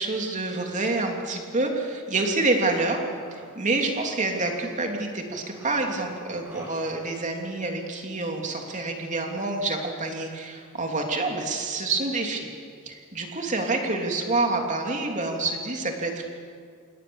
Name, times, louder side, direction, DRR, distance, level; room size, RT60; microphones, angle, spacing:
voice 1, 0.0-3.0 3.3-12.5 12.8-16.2, right 2 dB, 35° right, 2 dB, 3.1 m, -27 dB
sound 1, 3.1-4.8 5.3-7.1 7.4-7.5, equal, 10° right, 6.9 m, -50 dB
28.0 x 19.5 x 7.2 m, 2.1 s
head